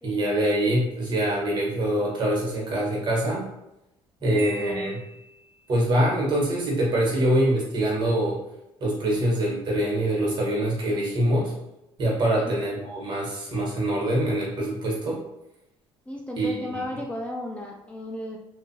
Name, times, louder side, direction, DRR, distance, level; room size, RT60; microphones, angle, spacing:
voice 1, 0.0-3.5 4.2-5.0 5.7-8.4 8.8-11.5 12.0-15.2 16.4-16.8, right 1 dB, 45° right, -3 dB, 1.2 m, -24 dB
voice 2, 2.6-3.0 4.2-4.9 9.1-9.3 12.3-12.5 16.1-18.4, left 1 dB, 10° left, -1 dB, 0.3 m, -36 dB
Marimba xylophone, 4.4-5.8, right 2 dB, 20° right, 0.9 m, -43 dB
2.6 x 2.4 x 2.7 m, 0.89 s
cardioid pair, 100°, 11 cm